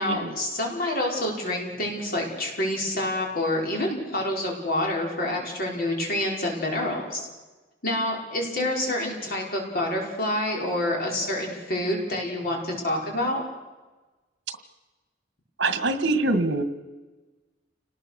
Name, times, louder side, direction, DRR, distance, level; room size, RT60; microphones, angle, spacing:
voice 1, 0.0-7.3 7.8-13.4, left 1 dB, 55° left, 0 dB, 5.2 m, -27 dB
voice 2, 15.6-16.6, right 2 dB, 65° right, 9 dB, 2.0 m, -24 dB
29.5 x 19.5 x 6.7 m, 1.2 s
head